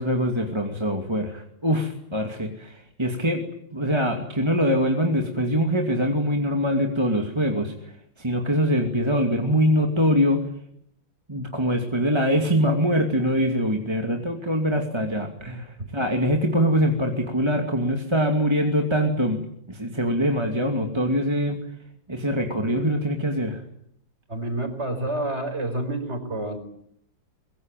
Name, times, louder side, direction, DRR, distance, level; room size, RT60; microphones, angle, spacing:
voice 1, 0.0-3.4 3.7-7.9 8.2-10.5 11.3-21.6 22.1-23.6, equal, 15° right, 2 dB, 2.4 m, -23 dB
voice 2, 24.3-26.6, right 1 dB, 35° right, 8 dB, 5.3 m, -28 dB
24.0 x 23.0 x 9.2 m, 0.72 s
omnidirectional pair, 2.1 m